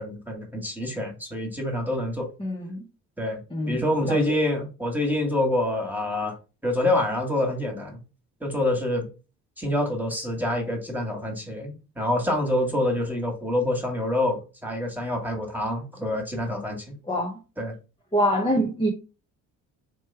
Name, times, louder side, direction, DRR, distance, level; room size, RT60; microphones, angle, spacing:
voice 1, 0.0-2.3 3.2-3.4 3.7-6.3 6.6-8.0 8.4-9.1 9.6-16.8 17.6-17.7, left 1 dB, 5° right, 2 dB, 2.0 m, -26 dB
voice 2, 2.4-2.8 3.5-4.2 17.0-17.4 18.1-18.9, equal, 10° left, 1 dB, 1.0 m, -25 dB
3.3 x 3.0 x 4.6 m, 0.33 s
hypercardioid pair, 45°, 42 cm